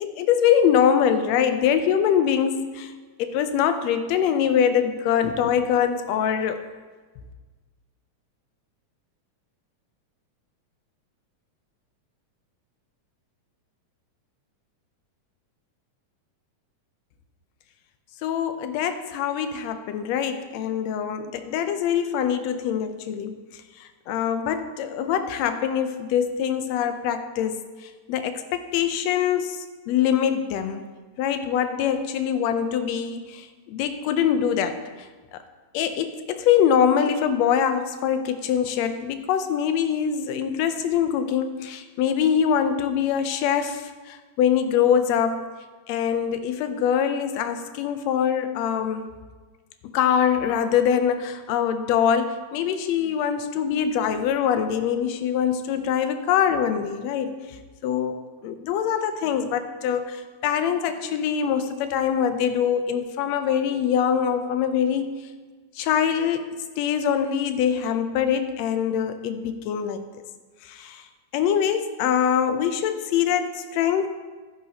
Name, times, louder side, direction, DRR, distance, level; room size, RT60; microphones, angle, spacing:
voice 1, 0.0-2.9 3.2-6.6 18.2-23.4 23.8-27.6 28.1-30.8 31.2-34.8 35.7-45.4 45.9-49.0 49.9-57.4 57.8-65.2 65.8-66.5 66.8-70.1 70.7-71.0 71.3-74.1, left 8 dB, 75° left, 9 dB, 1.8 m, -23 dB
12.0 x 10.5 x 2.8 m, 1.4 s
omnidirectional pair, 3.3 m